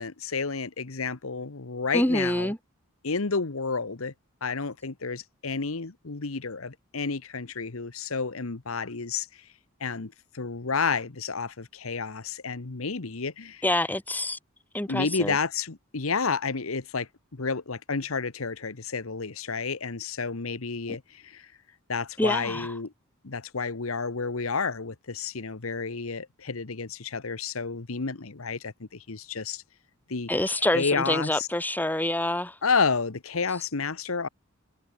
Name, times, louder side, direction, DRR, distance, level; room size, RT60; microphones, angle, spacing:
voice 1, 0.0-2.5 3.0-4.1 4.4-9.3 9.8-13.6 14.9-21.5 21.9-22.9 23.2-29.6 30.1-30.3 30.6-31.5 32.6-34.3, left 4 dB, 75° left, 1.2 m, -30 dB
voice 2, 1.9-2.6 13.6-14.4 14.7-15.3 22.2-22.7 30.3-32.5, left 1 dB, 10° left, 1.7 m, -26 dB
head